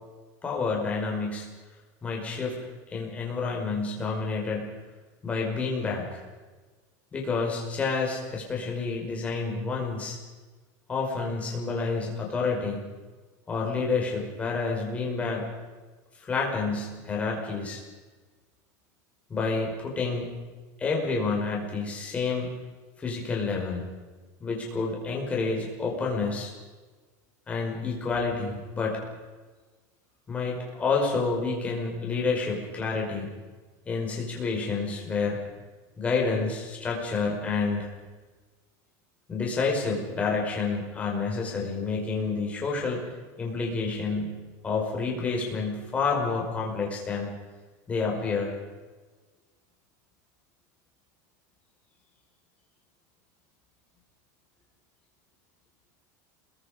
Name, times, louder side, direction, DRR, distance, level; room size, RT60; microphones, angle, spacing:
voice 1, 0.4-1.5 2.0-2.6 2.9-4.7 5.2-6.2 7.1-10.2 10.9-12.9 13.5-15.5 16.2-17.8 19.3-20.3 20.8-22.5 23.0-23.9 24.4-26.5 27.5-29.0 30.3-33.3 33.9-35.4 36.0-37.9 39.3-43.0 43.4-44.4 44.6-47.3 47.9-48.6, left 4 dB, 15° left, -1 dB, 5.4 m, -29 dB
28.5 x 22.5 x 5.2 m, 1.3 s
supercardioid pair, 170°, 10 cm